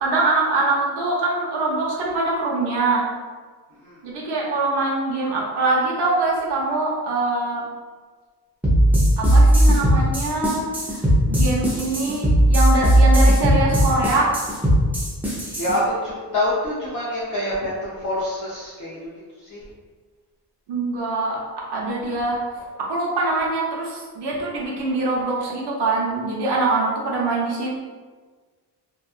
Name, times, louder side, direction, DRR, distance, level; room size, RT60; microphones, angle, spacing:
voice 1, 0.0-3.1 4.0-7.6 9.2-11.0 11.3-14.3 20.7-21.4 21.7-22.4 22.8-27.8, right 2 dB, 70° right, -3 dB, 0.8 m, -23 dB
sound 1, 8.6-15.7, right 1 dB, 5° right, 0.4 m, -17 dB
voice 2, 15.6-19.0 19.4-19.6, left 1 dB, 45° left, -8 dB, 0.6 m, -26 dB
2.8 x 2.3 x 2.3 m, 1.5 s
wide cardioid pair, 165°, 42 cm